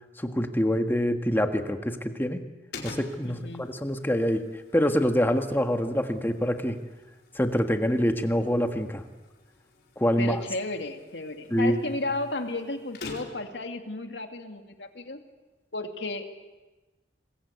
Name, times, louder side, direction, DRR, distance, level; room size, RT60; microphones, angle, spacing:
voice 1, 0.2-2.4 2.8-4.4 4.7-6.8 7.3-9.0 10.0-10.4 11.5-11.8, equal, 10° left, 6 dB, 1.7 m, -25 dB
sound 1, 2.7-13.6, left 3 dB, 65° left, 4.6 m, -48 dB
voice 2, 3.2-3.7 10.2-15.2 15.7-16.3, left 2 dB, 85° left, 5 dB, 2.6 m, -33 dB
26.0 x 21.5 x 8.2 m, 1.1 s
head